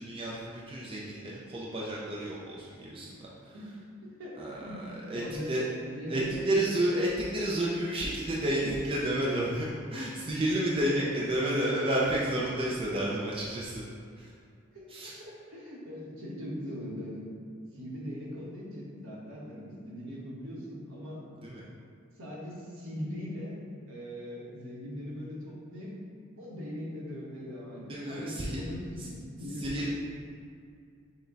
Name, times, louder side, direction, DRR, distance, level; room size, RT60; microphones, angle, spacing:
voice 1, 0.0-3.6 4.4-5.7 6.1-13.8 14.2-14.3 14.9-15.2 21.4-21.6 27.9-28.6 29.0-29.1 29.6-29.9, right 1 dB, 25° right, -5 dB, 0.4 m, -31 dB
voice 2, 4.0-4.8 5.1-6.5 11.0-11.1 14.7-17.2 17.7-21.2 22.1-23.6 23.9-25.9 26.4-29.9, equal, 75° right, -5 dB, 1.2 m, -40 dB
6.0 x 2.2 x 3.9 m, 2.3 s
head